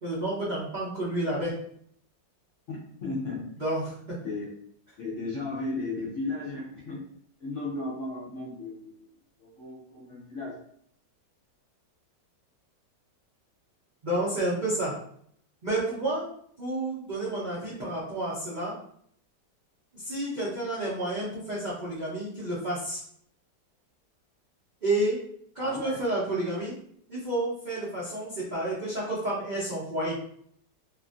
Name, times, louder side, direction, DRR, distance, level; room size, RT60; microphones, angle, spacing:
voice 1, 0.0-1.6 3.6-4.2 4.4-4.5 5.3-6.1 14.0-14.9 15.6-16.3 16.6-18.8 19.9-23.0 24.8-25.2 25.5-26.8 27.1-30.2, right 1 dB, 65° right, -8 dB, 0.4 m, -30 dB
voice 2, 2.7-3.5 4.2-4.5 5.0-7.1 7.4-8.9 9.4-10.5 25.6-26.0, left 2 dB, 60° left, -5 dB, 0.8 m, -35 dB
3.0 x 2.5 x 2.4 m, 0.66 s
omnidirectional pair, 1.9 m